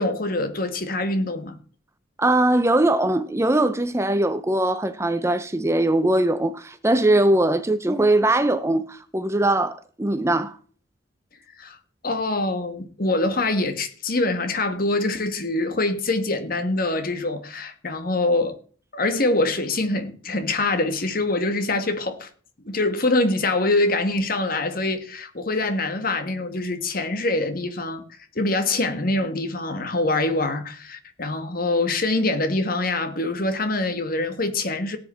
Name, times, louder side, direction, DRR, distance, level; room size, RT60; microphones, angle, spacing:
voice 1, 0.0-1.5 11.6-11.8 12.0-18.6 18.9-22.3 22.6-28.0 28.3-35.0, left 2 dB, 50° left, 1.5 m, -24 dB
voice 2, 2.2-10.6, right 1 dB, 15° right, 0.6 m, -21 dB
18.0 x 7.9 x 4.3 m
head